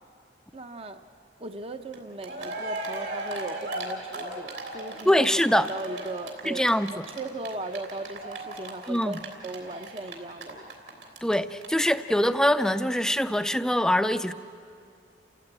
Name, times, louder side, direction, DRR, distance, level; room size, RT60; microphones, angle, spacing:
voice 1, 0.5-1.0 1.4-10.7, right 2 dB, 30° right, 8 dB, 0.7 m, -38 dB
Cheering, 1.9-11.3 11.6-11.7 11.9-12.0, right 2 dB, 70° right, 3.4 m, -36 dB
voice 2, 5.1-5.7 6.5-6.9 8.9-9.2 11.2-14.3, left 1 dB, 5° left, 11 dB, 0.5 m, -23 dB
29.5 x 15.0 x 8.8 m, 2.4 s
head